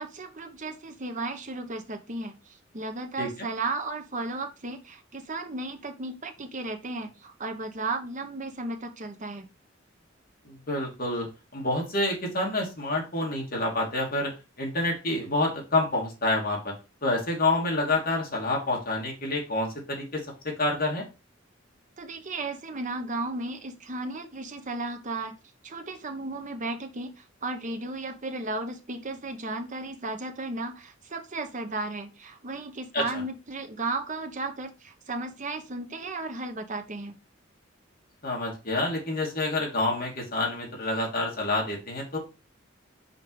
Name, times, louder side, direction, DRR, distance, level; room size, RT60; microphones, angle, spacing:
voice 1, 0.0-9.5 22.0-25.4 25.6-37.1, right 2 dB, 40° right, 6 dB, 1.0 m, -34 dB
voice 2, 10.4-14.3 14.6-16.7 17.0-21.1 32.9-33.0 38.2-42.2, left 2 dB, 50° left, -1 dB, 2.4 m, -28 dB
5.2 x 4.6 x 4.7 m, 0.30 s
head